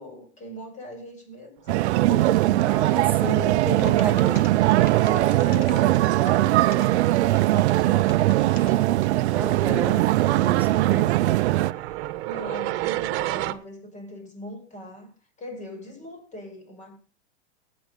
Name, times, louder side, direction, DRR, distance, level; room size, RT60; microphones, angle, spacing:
voice 1, 0.0-2.4 2.8-3.3 4.9-8.9 10.5-10.9 11.7-15.1 15.4-17.0, left 1 dB, 20° left, 5.6 m, -40 dB
sound 1, 1.7-11.7, right 16 dB, 75° right, 0.7 m, -20 dB
sound 2, 2.4-13.5, right 16 dB, 60° right, 1.3 m, -35 dB
voice 2, 2.6-4.5 9.3-11.4, right 3 dB, 5° right, 2.9 m, -32 dB
sound 3, 3.5-3.6 3.8-6.9 7.3-8.7, left 9 dB, 40° left, 1.6 m, -45 dB
19.0 x 8.6 x 5.2 m
supercardioid pair, 130°, 33 cm